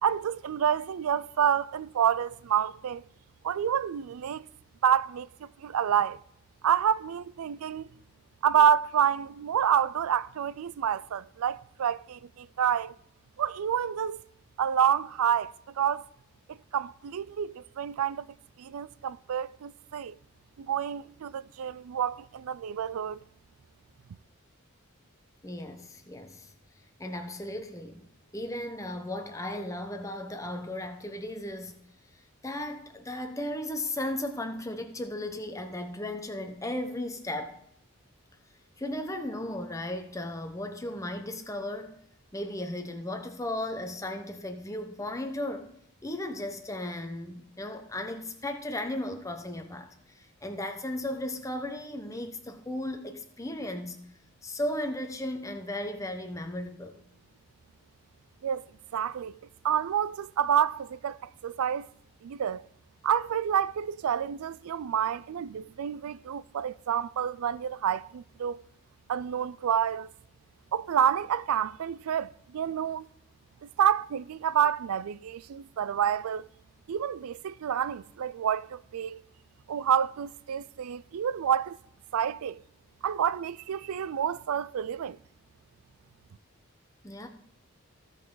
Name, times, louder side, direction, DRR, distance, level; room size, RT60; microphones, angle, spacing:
voice 1, 0.0-3.0 3.4-4.5 4.8-5.3 5.6-6.2 6.6-7.9 8.4-12.9 13.4-14.2 14.6-16.1 16.5-18.3 18.6-20.2 20.6-23.2 58.4-58.6 58.9-59.4 59.6-61.9 62.2-62.6 63.0-68.6 69.1-70.1 70.7-73.1 73.8-76.5 76.9-79.2 79.7-81.8 82.1-82.6 83.0-85.2, right 9 dB, 80° right, 0.4 m, -28 dB
voice 2, 25.4-26.5 27.0-28.0 28.3-31.8 32.4-37.6 38.8-41.9 42.3-45.7 46.0-54.0 54.4-57.0 87.0-87.3, left 1 dB, 15° left, 0.9 m, -35 dB
16.0 x 5.4 x 3.9 m
head